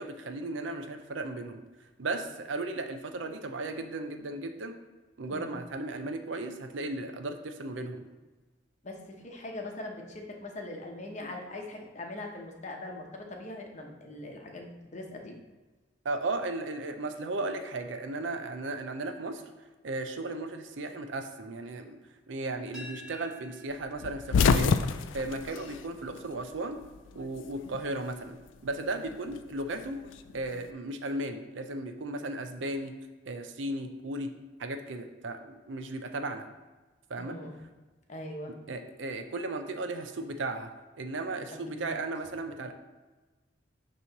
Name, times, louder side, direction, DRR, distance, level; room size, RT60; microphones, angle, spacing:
voice 1, 0.0-1.6 2.0-4.7 5.2-8.1 16.0-19.4 19.8-22.0 22.3-24.7 25.1-26.8 27.1-28.4 28.6-30.0 30.3-32.9 33.3-34.3 34.6-36.5 37.1-37.4 38.7-40.7 41.0-42.7, right 2 dB, 75° right, 7 dB, 0.6 m, -35 dB
voice 2, 8.8-15.4 37.2-37.6 38.1-38.5 41.7-42.0, left 1 dB, 40° left, 1 dB, 0.9 m, -41 dB
sound 1, 22.7-28.5, equal, 5° right, 1.5 m, -53 dB
sound 2, 24.0-26.6 26.8-27.9 29.1-30.6, left 5 dB, 75° left, 0.3 m, -27 dB
6.7 x 3.1 x 5.8 m, 1.2 s
head